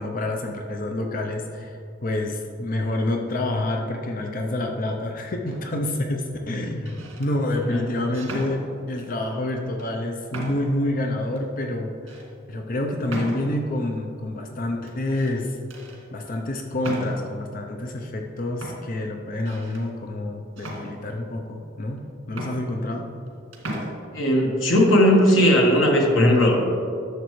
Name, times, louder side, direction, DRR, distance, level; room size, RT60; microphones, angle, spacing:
voice 1, 0.0-12.2 12.5-15.6 16.1-22.0 22.3-23.1, left 1 dB, 45° left, 3 dB, 0.6 m, -28 dB
sound 1, 5.5-5.9 6.7-7.3 8.1-9.1 9.8-9.9 10.3-10.8 11.4-11.5 12.1-12.3 13.1-13.8 14.9-15.4 15.7-16.0 16.8-17.4 18.2-18.3 18.6-19.8 20.6-21.4 22.0-22.1 22.3-23.3 23.5-23.9, right 1 dB, 80° right, 1.8 m, -36 dB
voice 2, 24.1-26.7, equal, 75° left, -1 dB, 1.4 m, -17 dB
11.0 x 6.9 x 3.2 m, 2.5 s
head